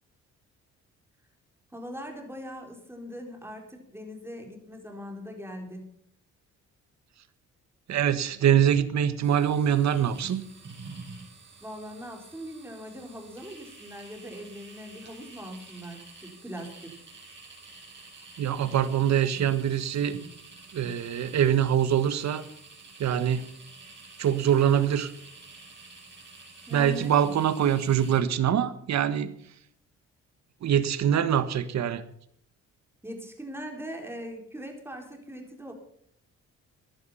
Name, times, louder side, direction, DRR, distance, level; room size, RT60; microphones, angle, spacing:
voice 1, 1.7-5.9 11.6-16.9 26.7-27.3 33.0-35.7, equal, 10° right, 2 dB, 4.2 m, -41 dB
voice 2, 7.9-10.4 18.4-20.2 20.7-22.4 23.0-23.5 24.2-25.1 26.7-29.3 30.6-32.0, right 9 dB, 65° right, 13 dB, 1.4 m, -24 dB
sound 1, 9.2-28.2, right 3 dB, 40° right, 6.8 m, -48 dB
15.0 x 11.0 x 5.6 m, 0.66 s
cardioid pair, 90°, 30 cm